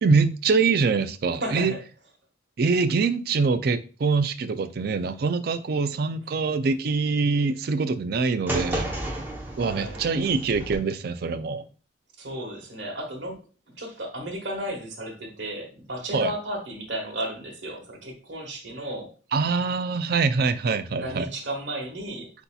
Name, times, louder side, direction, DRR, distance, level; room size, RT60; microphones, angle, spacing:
voice 1, 0.0-1.7 2.6-9.0 9.6-11.6 16.1-16.3 19.3-21.3, right 4 dB, 50° right, 0.4 m, -24 dB
voice 2, 1.4-1.8 9.5-10.0 12.2-13.4 13.8-19.1 21.0-22.3, right 1 dB, 70° right, 1.4 m, -33 dB
sound 1, 8.5-10.8, right 1 dB, 10° right, 0.7 m, -32 dB
7.9 x 2.8 x 2.3 m
head